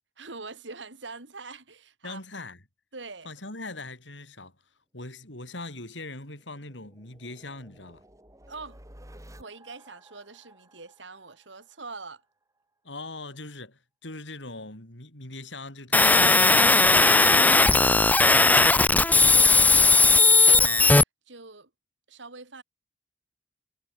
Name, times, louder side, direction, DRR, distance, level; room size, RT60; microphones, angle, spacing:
voice 1, 0.2-2.2 2.9-3.3 8.5-8.8 9.4-12.2 19.3-21.0 21.3-21.7 22.1-22.6, right 3 dB, 85° right, 3.5 m, -43 dB
voice 2, 2.0-2.6 3.2-4.5 4.9-8.0 12.8-18.2, left 2 dB, 80° left, 6.6 m, -41 dB
sound 1, 5.6-12.2, right 1 dB, 20° right, 5.7 m, -54 dB
sound 2, 15.9-21.0, left 3 dB, 10° left, 0.4 m, -17 dB
head